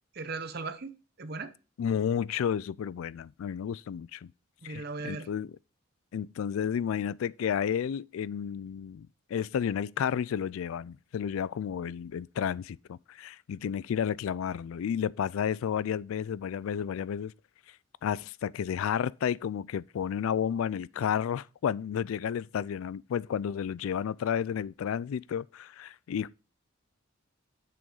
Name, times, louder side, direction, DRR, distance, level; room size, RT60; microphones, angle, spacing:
voice 1, 0.1-1.5 4.6-5.3, right 4 dB, 50° right, 0.8 m, -38 dB
voice 2, 1.8-4.3 4.6-5.5 6.1-17.3 18.0-26.3, left 8 dB, 75° left, 0.3 m, -32 dB
7.5 x 6.3 x 3.9 m
head